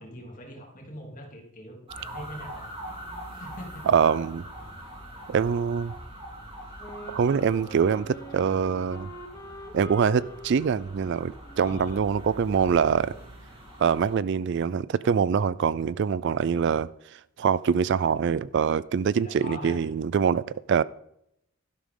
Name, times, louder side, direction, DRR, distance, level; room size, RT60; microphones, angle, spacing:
voice 1, 0.0-2.7 3.3-3.8 4.6-4.7 11.5-12.0 19.1-19.8, left 1 dB, 35° left, 2.8 m, -42 dB
sound 1, 1.9-14.2, right 1 dB, 25° right, 3.4 m, -43 dB
voice 2, 3.9-4.4 5.3-5.9 7.1-9.1 9.7-13.1 13.8-20.8, right 6 dB, 55° right, 0.3 m, -24 dB
Wind instrument woodwind instrument, 6.8-13.4, equal, 15° left, 1.3 m, -45 dB
12.5 x 11.0 x 3.7 m
head